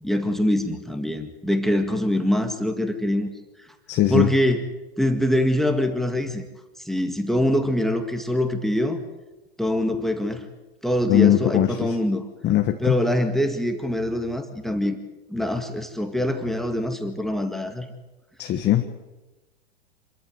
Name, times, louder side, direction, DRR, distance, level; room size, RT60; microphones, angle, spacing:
voice 1, 0.0-3.3 4.1-4.6 5.0-6.5 6.8-9.0 9.6-10.5 10.8-12.2 12.8-15.0 15.3-17.9, left 1 dB, ahead, 7 dB, 1.9 m, -24 dB
voice 2, 3.9-4.3 11.1-11.7 12.4-12.8 18.4-18.9, left 12 dB, 35° left, 5 dB, 1.4 m, -19 dB
26.5 x 14.0 x 7.9 m, 1.1 s
hypercardioid pair, 115°, 32 cm